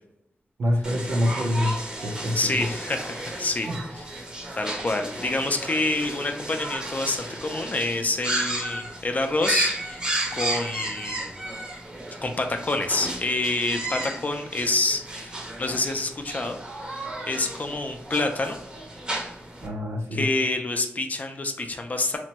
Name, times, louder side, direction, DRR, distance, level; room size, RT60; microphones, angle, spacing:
voice 1, 0.6-1.7 2.0-2.6 3.7-3.8 19.6-20.3, left 1 dB, 85° right, 0 dB, 0.7 m, -26 dB
sound 1, 0.8-19.7, right 1 dB, 20° right, 0.7 m, -33 dB
voice 2, 2.3-3.7 3.9-4.0 4.6-10.0 10.3-11.3 12.2-18.6 20.1-22.2, left 2 dB, 35° left, 5 dB, 0.4 m, -27 dB
2.9 x 2.2 x 2.8 m, 0.82 s
wide cardioid pair, 100°, 4 cm